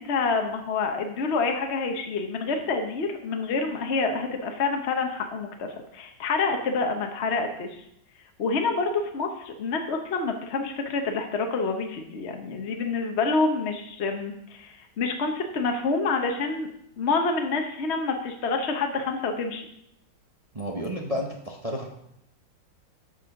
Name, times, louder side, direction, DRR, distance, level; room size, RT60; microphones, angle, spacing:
voice 1, 0.0-7.7 8.4-16.7 17.0-19.6, left 4 dB, 45° left, 4 dB, 1.0 m, -27 dB
voice 2, 20.5-21.9, equal, 35° right, 1 dB, 0.6 m, -31 dB
8.3 x 6.9 x 5.8 m, 0.76 s
omnidirectional pair, 2.1 m